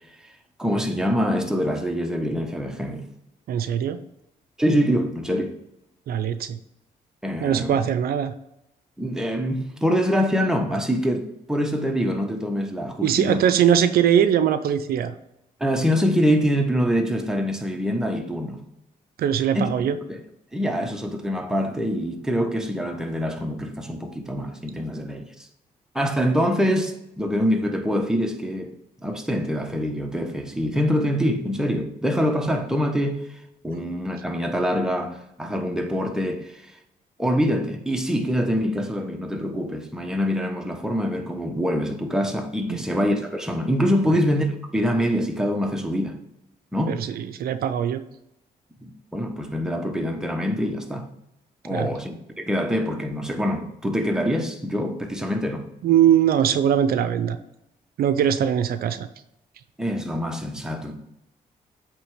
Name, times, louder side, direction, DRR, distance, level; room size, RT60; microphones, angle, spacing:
voice 1, 0.6-3.0 4.6-5.6 7.2-7.8 9.0-13.4 15.6-18.6 19.5-19.7 20.1-20.2 20.5-25.3 25.9-28.7 29.0-36.8 37.2-46.2 46.7-47.0 48.8-51.0 51.6-55.7 59.8-61.0, equal, 5° right, 1.1 m, -25 dB
voice 2, 3.5-4.0 6.1-6.6 7.4-8.3 13.0-15.1 19.2-20.0 42.7-42.8 46.9-48.0 51.7-51.9 55.8-57.4 58.0-59.1, right 9 dB, 75° right, 0.5 m, -21 dB
8.2 x 3.3 x 4.9 m
cardioid pair, 65°, 16 cm